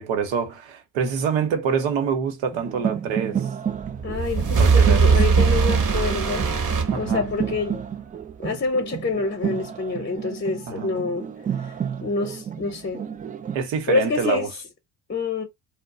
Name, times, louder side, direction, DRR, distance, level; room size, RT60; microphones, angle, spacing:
voice 1, 0.0-3.5 4.6-5.2 6.9-7.3 10.7-10.9 13.5-14.5, right 6 dB, 70° right, 0.9 m, -26 dB
sound 1, 2.5-13.6, right 8 dB, 20° right, 0.3 m, -31 dB
sound 2, 3.8-7.6, right 5 dB, 40° right, 0.9 m, -20 dB
voice 2, 4.0-6.5 6.9-7.8 8.4-11.3 12.0-13.0 13.9-14.5 15.1-15.4, left 4 dB, 25° left, 0.8 m, -26 dB
2.2 x 2.2 x 3.7 m
hypercardioid pair, 50°, 47 cm